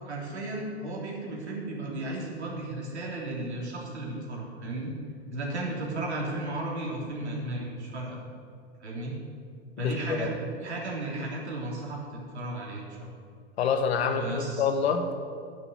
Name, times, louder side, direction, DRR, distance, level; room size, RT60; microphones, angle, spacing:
voice 1, 0.0-4.9 5.3-8.2 8.8-9.1 9.8-10.3 10.6-13.1 14.1-14.6, right 2 dB, 90° right, -3 dB, 3.5 m, -34 dB
voice 2, 9.8-10.3 13.6-15.3, left 6 dB, 70° left, 7 dB, 1.5 m, -27 dB
10.5 x 7.0 x 9.1 m, 2.2 s
hypercardioid pair, 100°, 33 cm